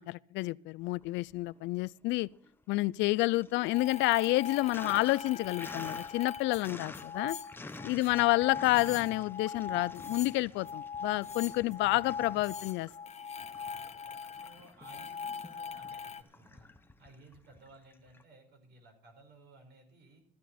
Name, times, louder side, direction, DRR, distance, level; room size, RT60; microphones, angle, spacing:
voice 1, 0.0-2.3 2.7-7.4 7.8-12.9, left 20 dB, 80° left, 0.4 m, -29 dB
Sink (filling or washing), 0.9-1.8 2.1-18.2, left 3 dB, 10° left, 0.8 m, -50 dB
sound 1, 3.7-16.2, left 6 dB, 35° left, 1.0 m, -41 dB
voice 2, 8.0-9.1 11.8-12.2 14.4-16.7 17.0-20.2, right 2 dB, 65° right, 5.1 m, -57 dB
14.5 x 11.5 x 4.2 m
cardioid pair, 105°, 19 cm